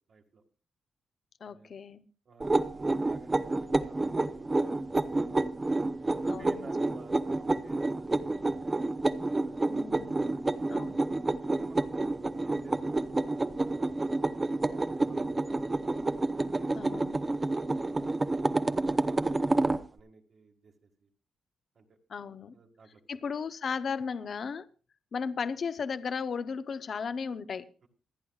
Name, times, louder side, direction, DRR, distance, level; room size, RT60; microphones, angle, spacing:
voice 1, 0.1-0.4 1.5-1.7 2.3-5.4 6.1-8.9 9.3-9.8 10.2-11.1 11.5-13.2 13.6-13.9 14.5-16.0 16.3-17.4 17.8-21.1 21.8-21.9 22.5-23.0 27.8-27.9, right 4 dB, 45° right, 1.8 m, -54 dB
voice 2, 1.4-2.0 6.3-6.7 9.7-10.2 10.7-11.0 16.7-17.2 22.1-22.5 23.1-24.7 25.1-27.7, left 5 dB, 40° left, 0.6 m, -35 dB
sound 1, 2.4-19.8, right 2 dB, 15° right, 0.7 m, -29 dB
26.0 x 10.0 x 2.4 m
wide cardioid pair, 170°, 0 cm